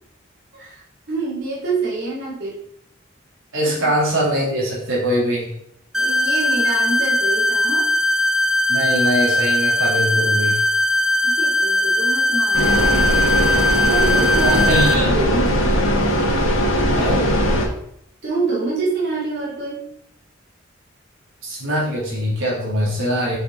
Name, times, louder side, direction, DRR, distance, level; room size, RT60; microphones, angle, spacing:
voice 1, 0.5-2.6 3.6-3.9 5.9-7.9 11.2-13.2 13.9-15.7 18.2-19.9, right 3 dB, 55° right, -8 dB, 2.9 m, -26 dB
voice 2, 3.5-5.5 8.7-10.6 14.4-15.1 16.9-17.3 21.4-23.4, equal, 80° right, -4 dB, 2.6 m, -22 dB
sound 1, 5.9-14.9, left 1 dB, 5° right, 0.4 m, -19 dB
sound 2, 12.5-17.7, equal, 80° left, 1.6 m, -19 dB
6.6 x 5.7 x 3.9 m, 0.72 s
head